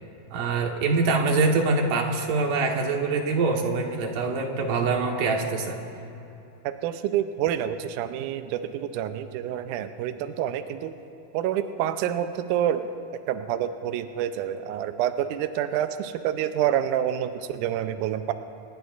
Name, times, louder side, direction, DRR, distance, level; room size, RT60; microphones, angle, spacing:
voice 1, 0.3-5.8, right 3 dB, 65° right, 1 dB, 2.8 m, -24 dB
voice 2, 6.6-10.9 11.3-12.9 13.3-18.3, right 10 dB, 85° right, 9 dB, 1.8 m, -28 dB
27.0 x 20.5 x 2.5 m, 2.9 s
omnidirectional pair, 4.3 m